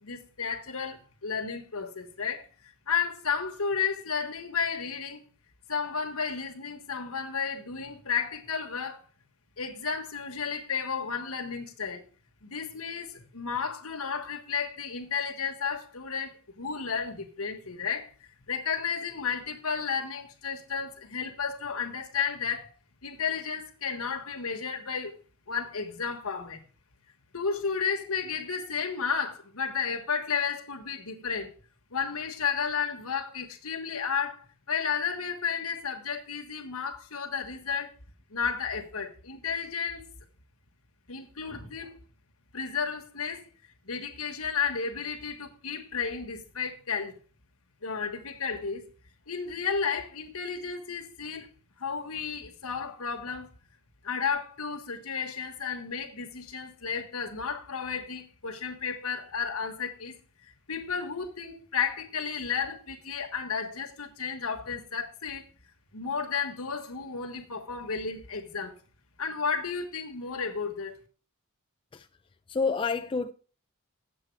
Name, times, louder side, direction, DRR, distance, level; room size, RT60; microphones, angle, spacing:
voice 1, 0.0-2.4 2.9-5.2 5.7-9.0 9.6-12.0 12.4-18.1 18.5-22.7 23.0-25.2 25.5-26.6 27.3-31.5 31.9-37.9 38.3-40.0 41.1-42.0 42.5-43.4 43.8-47.1 47.8-48.9 49.3-51.5 51.8-53.5 54.0-60.2 60.4-65.4 65.9-68.7 69.2-71.0, left 6 dB, 70° left, 1.5 m, -32 dB
voice 2, 72.5-73.3, left 4 dB, 25° left, 0.3 m, -28 dB
8.2 x 7.5 x 4.7 m
head